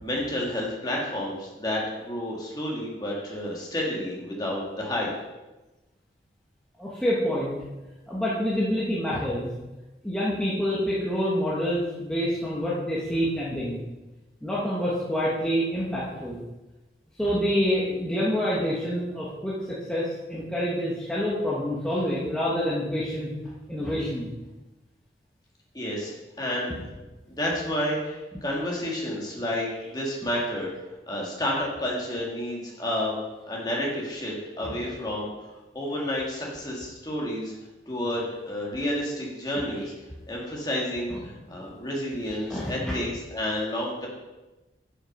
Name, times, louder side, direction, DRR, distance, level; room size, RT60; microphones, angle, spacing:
voice 1, 0.0-5.1 25.7-26.7 27.4-30.7 31.1-33.2 33.5-35.3 35.7-37.5 37.9-39.9 40.3-44.1, left 1 dB, 20° left, -3 dB, 2.1 m, -30 dB
voice 2, 6.8-7.5 8.1-9.5 10.0-13.8 14.4-16.4 17.2-23.3 23.7-24.3 41.1-41.2 42.5-42.9, equal, 5° left, -8 dB, 1.3 m, -27 dB
7.6 x 6.5 x 5.3 m, 1.1 s
head